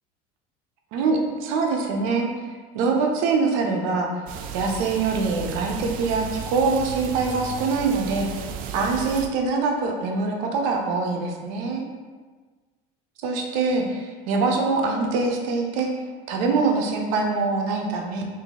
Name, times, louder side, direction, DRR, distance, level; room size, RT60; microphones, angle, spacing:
voice 1, 0.9-2.3 2.7-4.1 4.5-8.3 8.7-11.8 13.2-15.9 16.3-18.2, right 4 dB, 75° right, 2 dB, 0.7 m, -24 dB
sound 1, 4.3-9.3, right 6 dB, 55° right, 0.4 m, -34 dB
3.4 x 2.7 x 4.0 m, 1.4 s
supercardioid pair, 125°, 18 cm